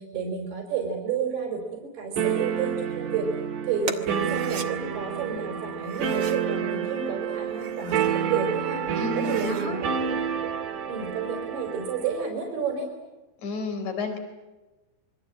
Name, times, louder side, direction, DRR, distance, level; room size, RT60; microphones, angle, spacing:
voice 1, 0.0-3.3 3.6-9.7 10.0-10.5 10.9-12.9, right 6 dB, 80° right, 3 dB, 5.7 m, -31 dB
sound 1, 2.2-12.2, right 8 dB, 60° right, 3.2 m, -29 dB
sound 2, 3.8-4.7 5.8-6.5 7.4-8.1 8.6-8.7 9.0-9.7, right 4 dB, 40° right, 1.7 m, -38 dB
voice 2, 9.0-9.8 13.4-14.2, left 3 dB, 50° left, 7 dB, 5.4 m, -31 dB
27.5 x 23.0 x 8.9 m, 1.1 s
omnidirectional pair, 4.5 m